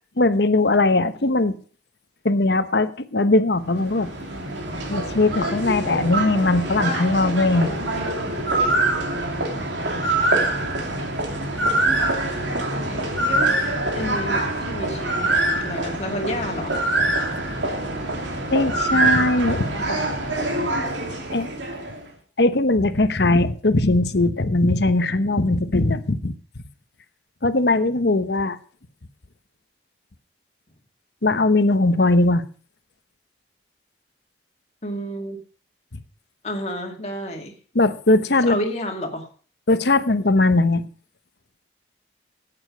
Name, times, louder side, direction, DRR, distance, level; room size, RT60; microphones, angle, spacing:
voice 1, 0.2-1.6 2.2-4.1 4.9-7.7 18.5-19.7 21.3-21.5 22.4-26.3 27.4-28.6 31.2-32.4 37.7-38.6 39.7-40.8, left 2 dB, 65° left, 11 dB, 1.0 m, -19 dB
sound 1, 3.6-22.0, right 2 dB, 80° right, 2.8 m, -24 dB
voice 2, 13.9-16.8 19.9-20.0 34.8-35.4 36.4-37.5 38.4-39.3, equal, 35° left, 2 dB, 2.3 m, -30 dB
14.0 x 8.9 x 5.2 m, 0.41 s
head